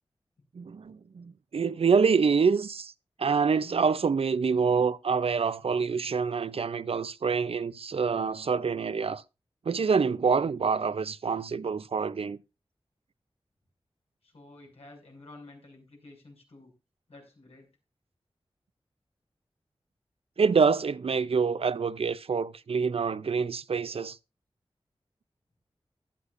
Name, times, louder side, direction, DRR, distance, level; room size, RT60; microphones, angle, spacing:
voice 1, 0.5-2.9 3.2-9.2 9.7-12.4 20.4-24.2, right 5 dB, 70° right, 0.6 m, -26 dB
voice 2, 14.2-16.7 17.1-17.7, left 2 dB, 85° left, 6.1 m, -51 dB
16.0 x 11.5 x 2.6 m
wide cardioid pair, 75°, 10 cm